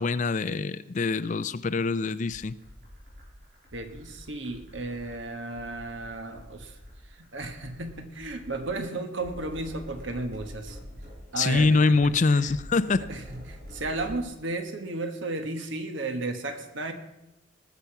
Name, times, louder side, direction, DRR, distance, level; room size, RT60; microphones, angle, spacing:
voice 1, 0.0-2.5 11.4-13.1, left 3 dB, 40° left, 13 dB, 0.4 m, -24 dB
sound 1, 2.3-14.2, equal, 45° right, 5.2 m, -46 dB
voice 2, 3.7-6.8 7.0-10.8 11.3-12.5 13.1-16.9, right 2 dB, 65° right, 7 dB, 1.2 m, -34 dB
19.5 x 6.9 x 5.8 m, 0.93 s
head